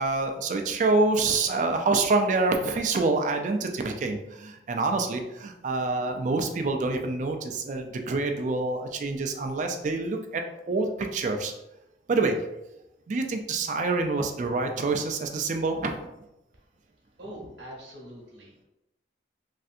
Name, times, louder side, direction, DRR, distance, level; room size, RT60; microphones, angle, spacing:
voice 1, 0.0-10.4 10.7-11.5 12.1-12.4 13.1-16.0, right 3 dB, 40° right, 5 dB, 0.3 m, -26 dB
voice 2, 17.2-18.6, equal, 80° right, -2 dB, 1.0 m, -43 dB
3.2 x 2.7 x 2.4 m, 0.91 s
head